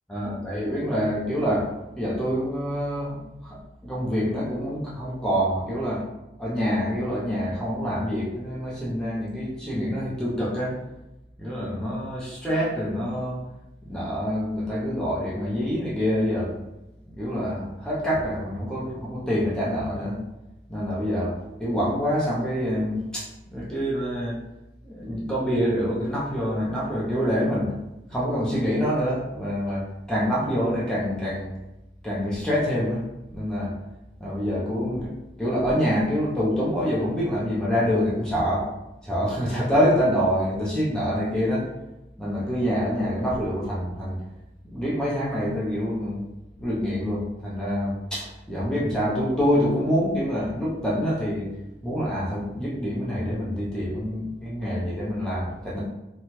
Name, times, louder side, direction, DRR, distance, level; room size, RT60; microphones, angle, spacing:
voice 1, 0.1-6.0 6.4-10.8 11.4-13.4 13.8-16.6 17.1-20.2 20.7-24.4 24.8-27.7 28.1-31.5 32.0-33.0 33.3-33.7 34.2-35.1 35.4-38.7 39.0-41.7 42.2-44.2 44.6-46.2 46.6-51.5 51.8-55.8, equal, 5° left, -7 dB, 0.6 m, -26 dB
2.8 x 2.3 x 3.0 m, 0.96 s
head